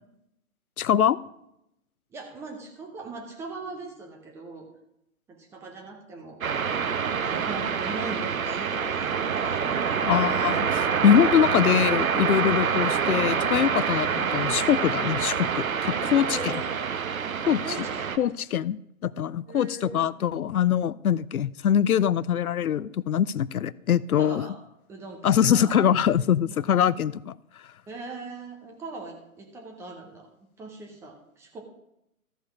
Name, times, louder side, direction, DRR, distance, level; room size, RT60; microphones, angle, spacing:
voice 1, 0.8-1.2 10.0-16.5 17.5-17.6 18.2-24.5 25.2-27.3, left 9 dB, 85° left, 19 dB, 0.5 m, -23 dB
voice 2, 2.1-4.7 5.3-6.4 7.2-10.1 12.5-12.7 16.2-16.7 17.2-18.2 19.4-20.0 24.2-24.6 24.9-25.9 26.4-26.6 27.9-30.3 30.6-31.6, right 3 dB, 5° right, 2 dB, 0.7 m, -40 dB
sound 1, 6.4-18.2, right 6 dB, 75° right, 1.0 m, -26 dB
14.0 x 5.2 x 6.2 m, 0.83 s
figure-of-eight pair, 135°, 42 cm